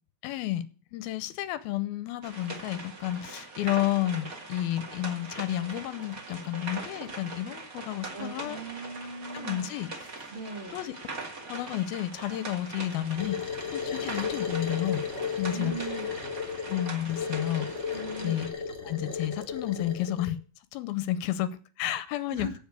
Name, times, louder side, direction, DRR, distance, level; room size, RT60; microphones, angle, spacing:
voice 1, 0.2-0.7 0.9-8.6 9.3-10.1 10.7-10.9 11.5-15.0 15.4-16.0 16.7-17.7 18.2-18.5 18.8-20.4 20.7-22.6, left 13 dB, 80° left, 2.4 m, -31 dB
sound 1, 2.2-18.5, right 3 dB, 30° right, 1.9 m, -41 dB
voice 2, 8.1-9.7 10.3-10.8 15.5-16.1 17.9-18.4 22.3-22.6, right 4 dB, 70° right, 0.6 m, -39 dB
sound 2, 13.2-20.3, left 6 dB, 20° left, 2.4 m, -34 dB
15.0 x 5.2 x 8.2 m
omnidirectional pair, 4.7 m